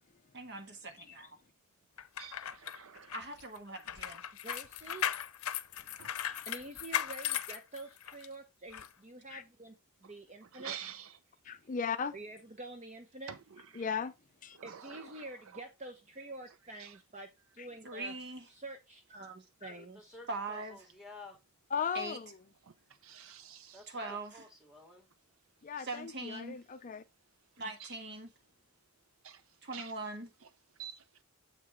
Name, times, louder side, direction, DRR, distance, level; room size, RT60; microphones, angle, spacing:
voice 1, 0.3-1.4 3.1-4.2 17.8-18.5 20.3-20.8 21.9-22.2 23.9-24.5 25.8-26.6 27.6-28.3 29.6-30.3, right 2 dB, 55° right, 1.5 m, -41 dB
sound 1, 2.0-8.3 8.7-8.9, left 10 dB, 85° left, 0.6 m, -37 dB
voice 2, 2.2-3.2 6.0-6.1 10.0-10.1 10.4-11.2 13.3-13.9 14.5-15.6 16.8-17.0 22.6-23.9 25.8-26.0 27.8-28.0 29.2-29.9 30.4-30.5 30.8-31.0, right 9 dB, 70° right, 0.6 m, -49 dB
voice 3, 4.4-5.1 6.5-10.8 12.1-13.3 14.6-17.3 17.5-18.1 18.5-20.2, right 2 dB, 35° right, 0.9 m, -47 dB
voice 4, 11.4-12.1 13.7-14.1 14.4-14.6 17.6-17.7 19.6-19.9 21.7-22.4 25.6-27.0, left 6 dB, 40° left, 0.4 m, -37 dB
voice 5, 19.9-21.4 23.7-24.0 24.3-25.1, left 3 dB, 5° right, 2.5 m, -52 dB
7.4 x 6.1 x 3.4 m
head